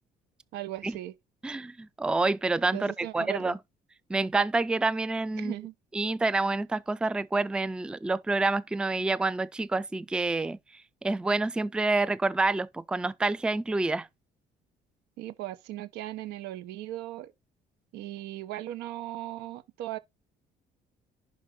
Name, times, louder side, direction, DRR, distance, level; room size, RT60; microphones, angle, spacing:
voice 1, 0.5-1.1 2.7-3.6 5.3-5.7 15.2-17.3 17.9-20.0, right 15 dB, 90° right, 0.9 m, -38 dB
voice 2, 1.4-3.6 4.1-5.5 5.9-10.6 11.0-14.1, right 3 dB, 5° right, 0.3 m, -28 dB
11.0 x 4.5 x 3.8 m
cardioid pair, 110°, 17 cm